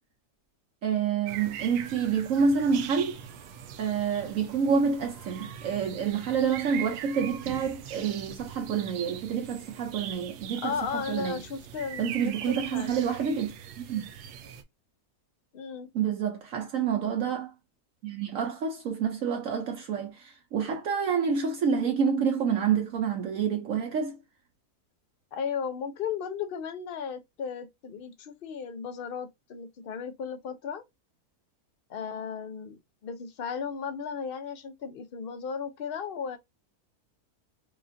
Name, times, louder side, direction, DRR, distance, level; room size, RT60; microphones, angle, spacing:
voice 1, 0.8-3.2 3.8-11.4 12.0-13.5 13.8-14.1 15.9-17.5 18.0-24.2, right 6 dB, 65° right, 1.0 m, -28 dB
sound 1, 1.3-14.6, right 9 dB, 90° right, 1.2 m, -42 dB
voice 2, 10.5-13.1 15.5-15.9 25.3-30.8 31.9-36.4, left 6 dB, 55° left, 0.6 m, -35 dB
4.9 x 2.5 x 2.6 m
omnidirectional pair, 1.6 m